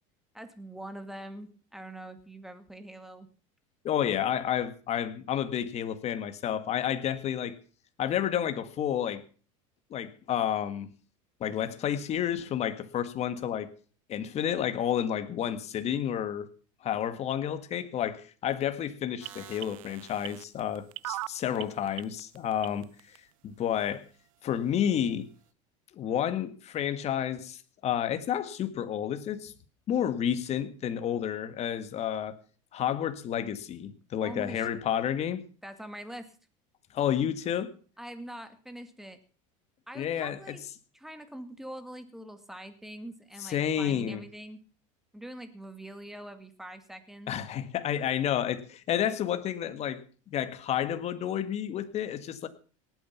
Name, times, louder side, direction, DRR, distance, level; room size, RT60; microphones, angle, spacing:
voice 1, 0.3-3.3 34.2-34.7 35.6-36.4 38.0-39.2 39.9-40.6 40.9-44.6 45.1-47.3, right 1 dB, ahead, 2.2 m, -44 dB
voice 2, 3.8-7.6 8.0-9.2 9.9-10.9 11.4-13.7 14.1-16.5 16.8-22.9 23.4-24.0 24.4-25.3 25.9-29.5 29.9-32.4 32.7-35.5 36.9-37.7 40.0-40.6 43.4-44.2 47.3-50.0 50.3-52.5, left 9 dB, 40° left, 1.8 m, -30 dB
sound 1, 19.2-23.2 23.8-23.9, right 19 dB, 85° right, 0.6 m, -39 dB
18.5 x 9.3 x 5.8 m
supercardioid pair, 120°, 17 cm